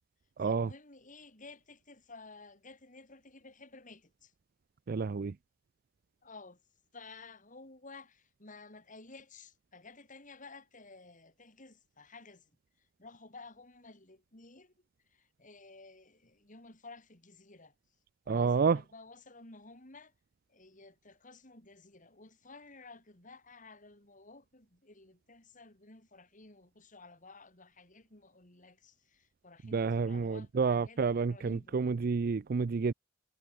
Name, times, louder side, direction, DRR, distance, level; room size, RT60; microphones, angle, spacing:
voice 1, 0.4-4.3 6.2-6.6 6.9-12.5 12.8-14.7 15.1-17.7 18.2-20.1 20.5-31.8, left 3 dB, 45° left, 5.0 m, -54 dB
voice 2, 4.9-5.3 18.3-18.8 29.7-32.9, right 5 dB, 50° right, 0.4 m, -29 dB
head